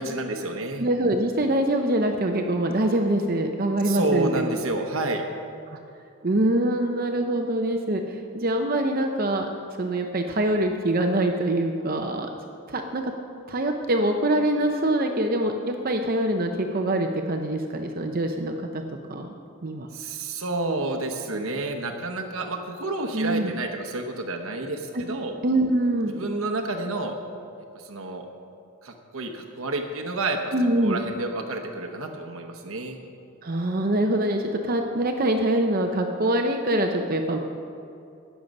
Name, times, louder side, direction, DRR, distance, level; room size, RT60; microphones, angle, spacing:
voice 1, 0.0-0.9 3.8-5.2 19.9-25.3 26.1-27.2 27.7-28.3 28.8-33.0, right 2 dB, 75° right, 4 dB, 1.0 m, -30 dB
voice 2, 0.8-4.6 6.2-9.5 9.8-12.3 12.7-13.1 13.5-18.8 19.1-19.3 19.6-19.9 23.1-23.5 24.9-25.0 25.4-26.1 30.5-31.0 33.4-37.4, right 1 dB, 40° right, 4 dB, 0.7 m, -24 dB
18.5 x 7.4 x 5.3 m, 2.6 s
head